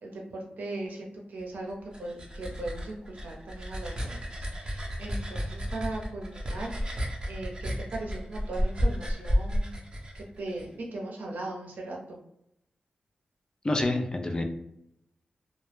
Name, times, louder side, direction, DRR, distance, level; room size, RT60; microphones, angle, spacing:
voice 1, 0.0-9.8 10.1-12.2, right 2 dB, 80° right, -1 dB, 0.6 m, -39 dB
sound 1, 1.7-10.7, equal, 30° right, 0.6 m, -32 dB
voice 2, 13.6-14.4, left 2 dB, 25° left, 4 dB, 0.4 m, -27 dB
2.1 x 2.0 x 3.1 m, 0.78 s
wide cardioid pair, 80°, 3 cm